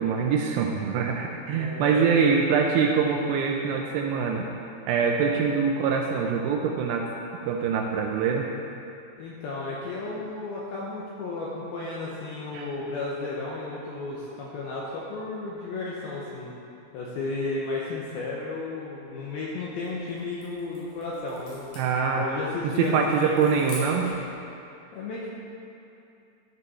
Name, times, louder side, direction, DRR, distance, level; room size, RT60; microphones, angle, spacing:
voice 1, 0.0-4.5 4.9-7.1 7.5-8.5 12.5-12.7 21.8-22.2 22.8-24.1, right 6 dB, 85° right, 1 dB, 2.5 m, -24 dB
voice 2, 1.6-2.6 9.2-16.5 16.9-21.7 22.2-23.6 24.9-25.3, left 3 dB, 80° left, -5 dB, 2.2 m, -33 dB
sound 1, 19.6-24.3, left 2 dB, 65° left, 4.2 m, -46 dB
13.5 x 5.4 x 4.1 m, 2.7 s
omnidirectional pair, 5.3 m